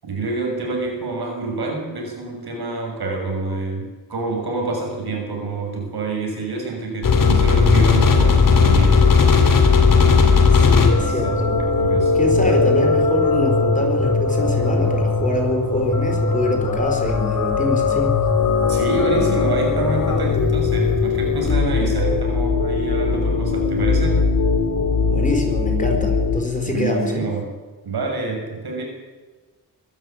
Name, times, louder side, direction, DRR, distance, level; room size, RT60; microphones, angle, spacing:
voice 1, 0.0-9.0 11.0-12.1 18.7-24.2 26.6-27.5 27.8-28.8, right 3 dB, 85° right, 2 dB, 6.8 m, -27 dB
sound 1, 7.0-26.4, left 4 dB, 60° left, 3.2 m, -18 dB
voice 2, 10.6-11.5 12.1-18.2 25.1-27.2, left 2 dB, 20° left, 3 dB, 4.5 m, -24 dB
23.0 x 12.5 x 9.4 m, 1.3 s
wide cardioid pair, 120°, 37 cm